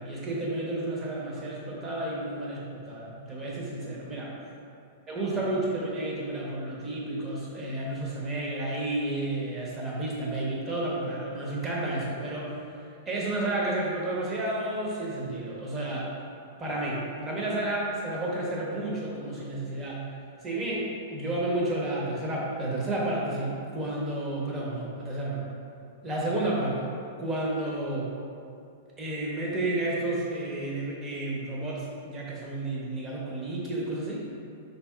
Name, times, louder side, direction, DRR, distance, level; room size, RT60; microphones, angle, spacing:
voice 1, 0.0-4.3 5.1-12.6 13.1-16.1 16.6-20.0 20.4-25.4 26.0-26.9 27.2-28.1 29.0-34.2, right 1 dB, 20° right, -5 dB, 1.0 m, -31 dB
5.1 x 4.1 x 2.4 m, 2.5 s
hypercardioid pair, 140°, 0 cm